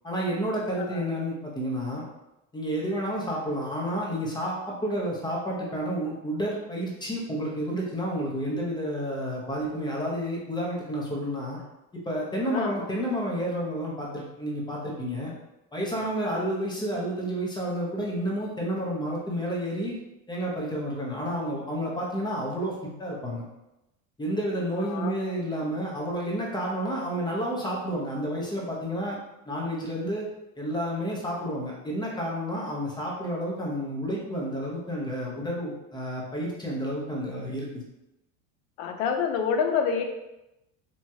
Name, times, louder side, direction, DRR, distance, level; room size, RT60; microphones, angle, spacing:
voice 1, 0.0-2.0 2.5-11.6 11.9-15.3 15.7-19.9 20.3-23.4 24.2-29.2 29.5-30.2 30.6-37.7, equal, 10° left, -4 dB, 0.7 m, -30 dB
voice 2, 24.7-25.1 38.8-40.0, left 6 dB, 75° left, 4 dB, 0.6 m, -28 dB
2.9 x 2.3 x 2.7 m, 0.92 s
supercardioid pair, 115°, 40 cm